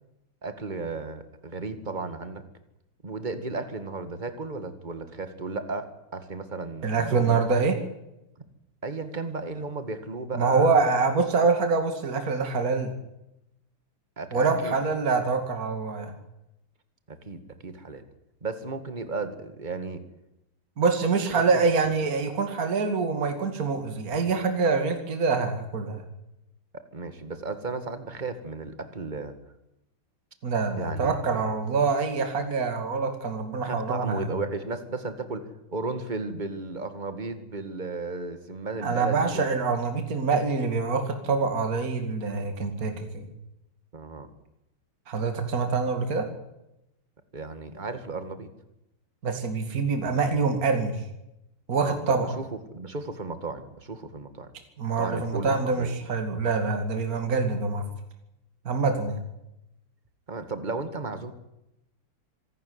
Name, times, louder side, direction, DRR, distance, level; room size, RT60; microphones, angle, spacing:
voice 1, 0.4-2.4 3.0-7.4 8.8-10.8 14.2-14.8 17.1-18.0 18.4-20.0 21.4-21.7 26.9-29.4 30.8-31.4 33.6-39.5 43.9-44.3 47.3-48.5 51.8-52.5 52.7-54.5 55.0-55.9 60.3-61.3, right 3 dB, 20° right, 9 dB, 2.0 m, -34 dB
voice 2, 6.8-7.8 10.3-12.9 14.3-16.1 20.8-26.0 30.4-34.3 38.8-43.3 45.1-46.3 49.2-51.0 51.7-52.4 54.8-57.8 58.6-59.2, right 4 dB, 40° right, 6 dB, 2.8 m, -25 dB
25.5 x 12.5 x 9.7 m, 0.88 s
omnidirectional pair, 2.4 m